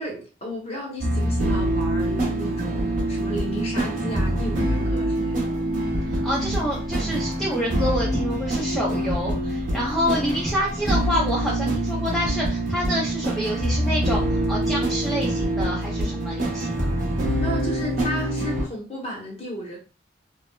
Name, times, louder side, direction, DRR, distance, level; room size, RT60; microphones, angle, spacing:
voice 1, 0.0-5.6 17.4-19.8, equal, 35° left, 0.8 m, -34 dB
sound 1, 1.0-18.7, right 1 dB, 45° right, 0.6 m, -25 dB
voice 2, 6.1-16.9, equal, ahead, 0.4 m, -27 dB
3.0 x 2.0 x 2.2 m
head